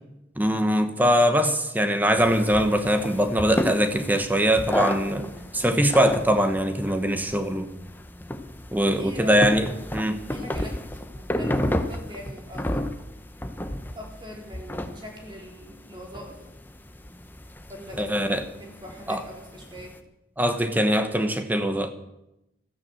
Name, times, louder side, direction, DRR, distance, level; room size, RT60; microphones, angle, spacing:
voice 1, 0.4-7.7 8.7-10.2 18.0-18.4 19.1-19.2 20.4-21.9, equal, 10° right, 1.1 m, -22 dB
sound 1, 2.2-20.0, left 1 dB, 10° left, 0.9 m, -33 dB
voice 2, 8.9-9.4 10.3-10.8 11.1-12.9 14.0-16.4 17.7-19.9, equal, 25° right, 3.7 m, -42 dB
14.0 x 10.5 x 7.7 m
head